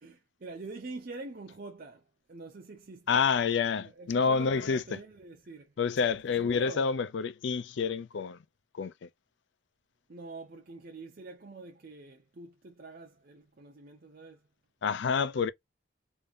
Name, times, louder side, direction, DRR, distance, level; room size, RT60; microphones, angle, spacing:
voice 1, 0.0-3.2 3.7-5.7 6.4-6.9 10.1-14.4, right 3 dB, 45° right, 0.6 m, -45 dB
voice 2, 3.1-4.8 5.8-8.4 8.7-9.1 14.8-15.5, left 5 dB, 60° left, 0.4 m, -28 dB
3.6 x 2.6 x 3.5 m
head